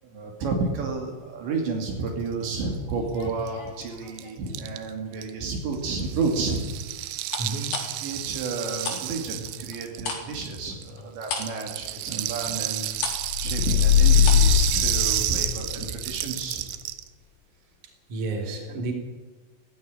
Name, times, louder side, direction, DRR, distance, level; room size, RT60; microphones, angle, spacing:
voice 1, 0.0-6.6 8.0-12.9 13.4-16.7, right 4 dB, 65° right, 1 dB, 4.8 m, -31 dB
sound 1, 2.9-4.6 5.1-5.5 7.3-9.0 9.3-14.5 14.8-14.9, left 5 dB, 55° left, 5.4 m, -36 dB
Rattle (instrument), 3.2-3.3 3.5-3.6 3.8-10.9 11.2-17.1, right 15 dB, 85° right, 3.5 m, -31 dB
voice 2, 7.4-7.7 18.1-18.9, right 2 dB, 40° right, 2 dB, 4.4 m, -30 dB
sound 2, 13.2-15.9, left 8 dB, 90° left, 3.5 m, -20 dB
17.5 x 16.0 x 10.0 m, 1.3 s
omnidirectional pair, 5.6 m